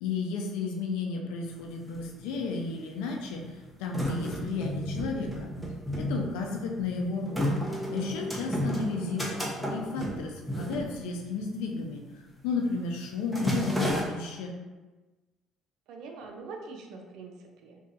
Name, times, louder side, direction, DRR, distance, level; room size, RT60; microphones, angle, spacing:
voice 1, 0.0-5.5 6.0-9.2 9.7-12.0 12.4-14.5, left 4 dB, 90° left, 1 dB, 0.4 m, -33 dB
sound 1, 1.5-1.6 1.8-2.6 3.3-11.5 11.8-12.1 12.4-12.8 13.0-14.0, equal, ahead, 0.8 m, -32 dB
voice 2, 8.2-9.0 15.9-17.8, right 3 dB, 75° right, 2 dB, 0.4 m, -44 dB
2.6 x 2.4 x 3.9 m, 1.2 s
supercardioid pair, 90°, 0 cm